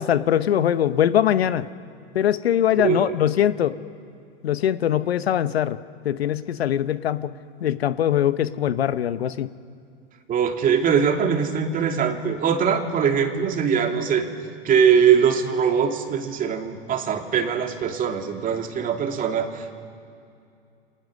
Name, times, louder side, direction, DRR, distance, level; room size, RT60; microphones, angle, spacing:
voice 1, 0.0-1.7 2.1-3.8 4.4-5.8 6.0-7.3 7.6-9.5, left 10 dB, 85° left, 14 dB, 1.0 m, -22 dB
voice 2, 2.7-3.1 10.3-14.3 14.6-19.7, right 7 dB, 25° right, 4 dB, 2.6 m, -22 dB
29.0 x 26.5 x 6.5 m, 2.5 s
hypercardioid pair, 120°, 30 cm